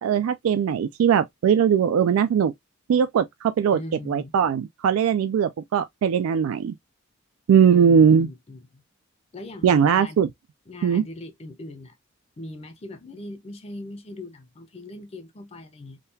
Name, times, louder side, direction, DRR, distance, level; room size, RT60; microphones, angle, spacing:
voice 1, 0.0-2.5 2.9-3.8 4.1-6.7 7.5-8.3 9.6-10.3 10.8-11.1, right 7 dB, 85° right, 0.3 m, -20 dB
voice 2, 3.7-4.3 7.7-8.8 9.3-10.2 10.7-12.0 12.4-16.0, left 2 dB, 30° left, 0.5 m, -40 dB
3.7 x 2.2 x 2.6 m
head